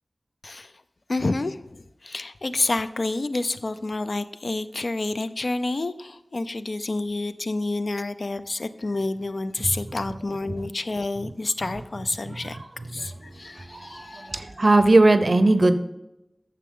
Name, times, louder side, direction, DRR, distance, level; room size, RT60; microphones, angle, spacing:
voice 1, 1.1-12.6 12.9-14.5, left 2 dB, 70° left, 0.4 m, -29 dB
voice 2, 13.8-15.8, right 2 dB, 60° right, 0.6 m, -18 dB
9.4 x 6.8 x 3.7 m
wide cardioid pair, 60°, 0 cm